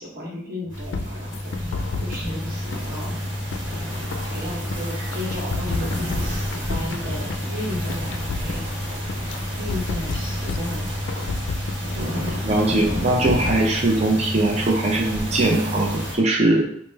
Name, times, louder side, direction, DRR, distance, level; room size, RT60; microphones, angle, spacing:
voice 1, 0.0-3.1 3.7-9.0 9.6-11.5 12.0-12.2, left 1 dB, 55° right, -3 dB, 1.1 m, -35 dB
Mechanical fan, 0.7-16.1, left 1 dB, ahead, 0.8 m, -32 dB
sound 1, 0.7-16.2, equal, 85° right, 1.0 m, -32 dB
sound 2, 0.9-2.3 2.7-4.8 5.1-7.4 7.7-9.4 9.7-12.0 12.3-12.4 12.7-13.7, left 4 dB, 75° left, 0.3 m, -31 dB
voice 2, 12.4-16.6, right 2 dB, 35° right, -1 dB, 0.5 m, -21 dB
4.3 x 2.1 x 3.2 m, 0.68 s
head